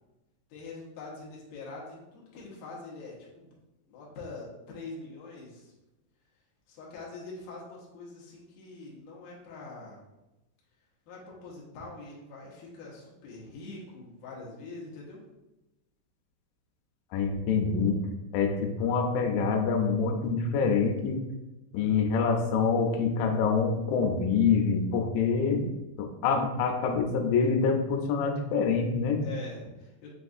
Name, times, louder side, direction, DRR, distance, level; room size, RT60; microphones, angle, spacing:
voice 1, 0.5-3.6 3.9-5.8 6.7-10.0 11.1-15.2 29.2-30.1, left 3 dB, 70° left, -5 dB, 2.0 m, -44 dB
voice 2, 17.1-18.0 18.3-21.2 21.7-25.7 26.0-29.2, left 5 dB, 90° left, 4 dB, 2.9 m, -26 dB
6.9 x 2.4 x 2.6 m, 0.97 s
omnidirectional pair, 5.1 m